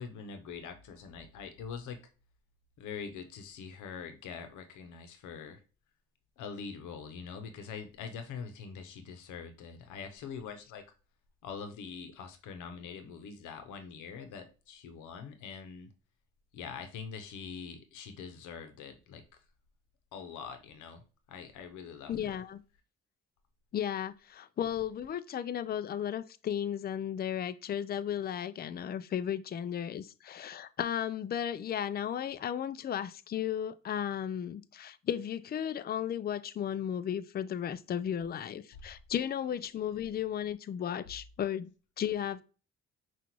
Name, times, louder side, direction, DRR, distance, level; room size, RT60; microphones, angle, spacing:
voice 1, 0.0-2.0 2.8-5.6 6.4-10.8 11.4-15.9 16.5-19.4 20.1-22.4, left 6 dB, 85° left, 0.8 m, -44 dB
voice 2, 22.1-22.6 23.7-41.7 42.0-42.4, left 9 dB, 35° left, 0.4 m, -34 dB
5.7 x 2.5 x 3.0 m
supercardioid pair, 65°, 29 cm